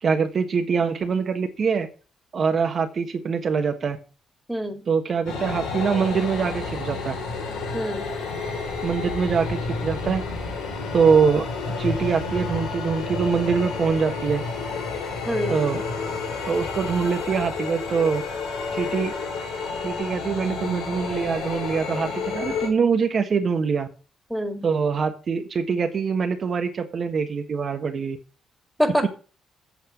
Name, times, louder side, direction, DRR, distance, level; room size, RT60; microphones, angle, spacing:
voice 1, 0.0-1.9 2.3-4.0 4.9-7.1 8.8-10.2 10.9-11.5 11.8-14.4 15.5-15.8 16.4-18.2 18.7-19.1 19.8-23.9 24.6-28.2, right 5 dB, 50° right, 6 dB, 1.3 m, -23 dB
voice 2, 4.5-4.8 7.7-8.1 15.3-15.6 24.3-24.7 28.8-29.1, equal, ahead, 5 dB, 2.1 m, -25 dB
sound 1, 5.3-22.7, left 4 dB, 90° left, 3.8 m, -30 dB
8.4 x 5.5 x 7.7 m, 0.36 s
cardioid pair, 90°, 0 cm